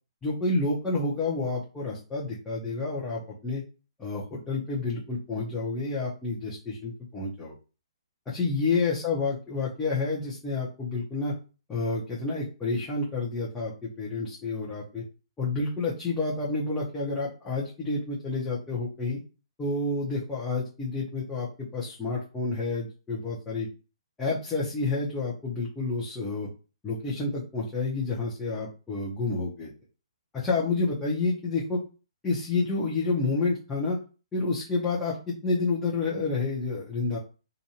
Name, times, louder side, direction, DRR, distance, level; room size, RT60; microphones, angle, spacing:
voice 1, 0.2-3.6 4.0-7.5 8.3-11.3 11.7-15.0 15.4-19.2 19.6-23.7 24.2-26.5 26.8-29.7 30.3-31.8 32.2-34.0 34.3-37.2, left 3 dB, 10° left, -7 dB, 0.7 m, -29 dB
2.6 x 2.3 x 2.9 m, 0.34 s
figure-of-eight pair, 130°, 3 cm